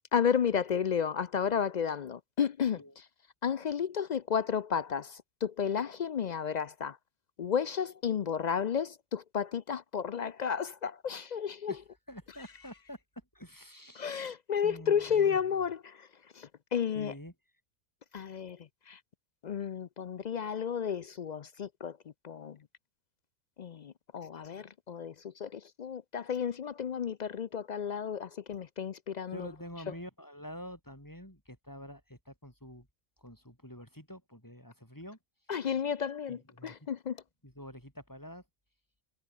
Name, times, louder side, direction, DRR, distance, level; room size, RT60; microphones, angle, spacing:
voice 1, 0.1-3.1 3.4-7.0 7.4-11.7 14.0-16.1 16.3-17.1 18.1-18.6 18.9-19.0 19.4-22.0 22.2-22.6 23.6-29.5 35.5-37.2, left 7 dB, 65° left, 0.4 m, -32 dB
voice 2, 12.1-13.0 13.3-14.3 14.6-15.4 16.9-17.3 29.3-32.9 33.2-35.2 36.3-36.9 37.4-38.4, equal, 15° left, 7.6 m, -47 dB
omnidirectional pair, 1.4 m